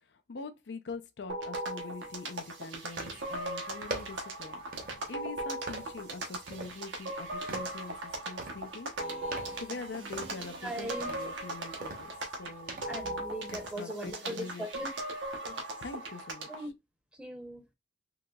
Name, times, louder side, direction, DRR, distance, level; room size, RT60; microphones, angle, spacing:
voice 1, 0.0-8.9 9.3-12.1 12.4-12.8 13.8-14.8 15.8-16.7, left 3 dB, 70° left, 0.5 m, -44 dB
sound 1, 1.3-16.7, right 1 dB, 90° right, 0.9 m, -39 dB
sound 2, 2.9-13.7, right 2 dB, 50° right, 0.8 m, -45 dB
voice 2, 10.6-11.1 12.9-14.9 15.4-15.6 16.5-16.7 17.2-17.7, equal, 5° right, 0.7 m, -39 dB
3.8 x 2.9 x 2.3 m
head